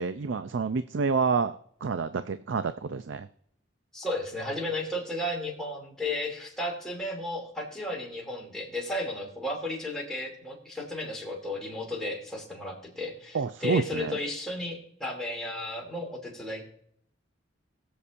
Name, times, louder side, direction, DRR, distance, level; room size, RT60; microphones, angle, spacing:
voice 1, 0.0-3.3 13.3-14.2, right 5 dB, 70° right, 11 dB, 0.4 m, -28 dB
voice 2, 3.9-16.6, left 1 dB, 5° left, -3 dB, 2.7 m, -34 dB
20.5 x 7.0 x 2.6 m, 0.64 s
head